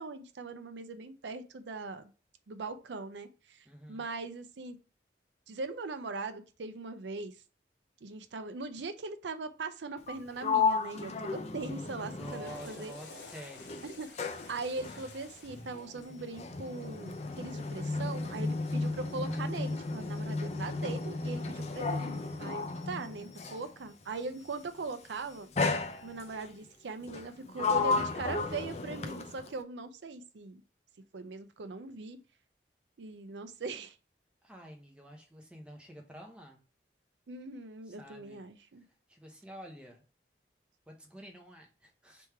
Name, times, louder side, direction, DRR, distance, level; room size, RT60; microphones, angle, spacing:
voice 1, 0.0-2.1 2.5-4.8 5.5-7.3 8.0-12.9 13.8-14.1 14.5-25.5 26.0-30.6 31.1-32.2 33.0-33.9 37.3-38.8, right 3 dB, 85° right, 10 dB, 0.5 m, -40 dB
voice 2, 3.6-4.0 12.0-13.8 34.4-36.6 37.8-38.5 38.8-40.0 40.9-42.3, equal, 5° right, 1 dB, 0.8 m, -49 dB
Sliding door, 10.0-13.3 13.6-23.7 24.6-24.9 25.6-26.5 27.1-29.6, left 4 dB, 35° left, 0.4 m, -34 dB
Water / Toilet flush, 12.0-18.3, left 3 dB, 70° left, 0.8 m, -52 dB
3.5 x 3.1 x 4.5 m, 0.35 s
head